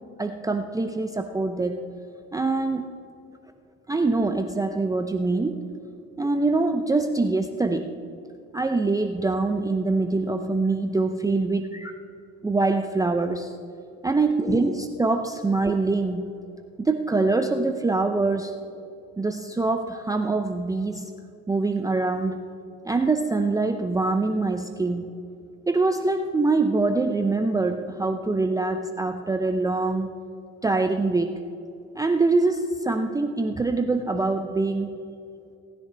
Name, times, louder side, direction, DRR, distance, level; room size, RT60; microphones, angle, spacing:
voice 1, 0.2-1.9 2.3-2.9 3.9-5.6 6.2-7.9 8.5-11.9 12.4-13.5 14.0-16.3 16.8-18.5 19.2-21.1 21.5-22.5 22.8-25.0 25.7-30.2 30.6-31.3 31.9-35.0, right 3 dB, 10° right, 6 dB, 0.6 m, -24 dB
18.5 x 10.0 x 3.4 m, 2.7 s
hypercardioid pair, 75°, 34 cm